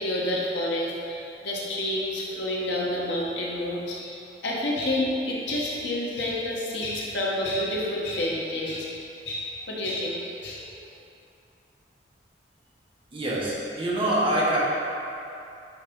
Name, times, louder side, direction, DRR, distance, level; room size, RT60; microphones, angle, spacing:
voice 1, 0.0-8.9 9.2-10.8, left 1 dB, 75° left, -4 dB, 1.3 m, -29 dB
voice 2, 13.1-14.6, right 1 dB, 30° right, -7 dB, 1.5 m, -25 dB
9.4 x 4.1 x 3.9 m, 2.8 s
head